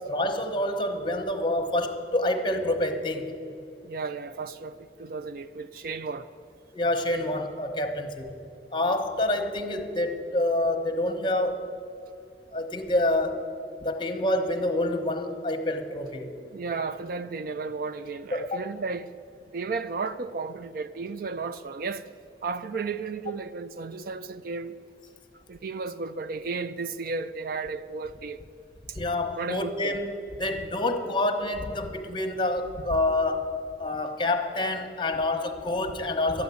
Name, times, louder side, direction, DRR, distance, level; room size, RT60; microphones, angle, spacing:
voice 1, 0.0-3.3 6.7-8.3 8.7-11.7 12.5-13.5 13.8-16.3 18.3-18.6 28.9-30.1 30.4-33.5 33.8-36.4, left 1 dB, 25° left, 1.0 m, -27 dB
voice 2, 3.8-6.3 16.4-19.1 19.5-22.1 22.4-24.8 25.5-28.4 28.9-29.0 29.4-30.0, right 4 dB, 55° right, 0.4 m, -34 dB
12.0 x 9.5 x 8.2 m
head